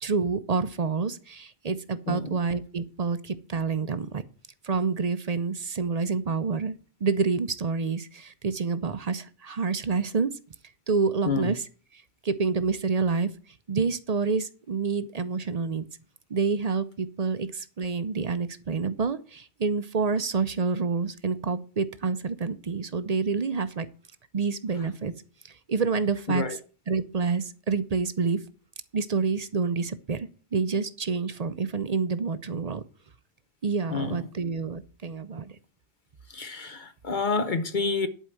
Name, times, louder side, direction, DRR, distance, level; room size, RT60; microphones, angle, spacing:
voice 1, 0.0-4.2 4.6-6.7 7.0-10.3 10.9-11.6 12.2-13.3 13.7-15.8 16.3-23.9 24.3-25.1 25.7-26.6 26.9-28.4 28.9-32.8 33.6-35.6, right 4 dB, 45° right, 0.6 m, -28 dB
voice 2, 33.9-34.2 36.3-38.1, left 4 dB, 50° left, 0.9 m, -28 dB
11.0 x 4.6 x 7.6 m
omnidirectional pair, 1.1 m